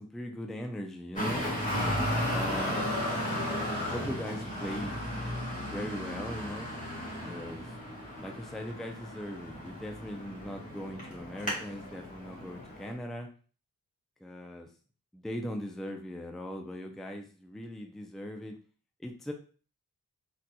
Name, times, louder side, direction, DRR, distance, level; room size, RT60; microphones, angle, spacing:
voice 1, 0.0-1.4 2.3-2.9 3.9-5.0 5.6-6.7 7.3-7.7 8.2-13.3 14.2-14.7 15.1-18.6 19.0-19.3, equal, ahead, 3 dB, 0.4 m, -39 dB
Traffic noise roadway noise, 1.2-12.9, left 1 dB, 25° left, 1.6 m, -34 dB
4.0 x 2.7 x 2.2 m, 0.38 s
wide cardioid pair, 95°, 32 cm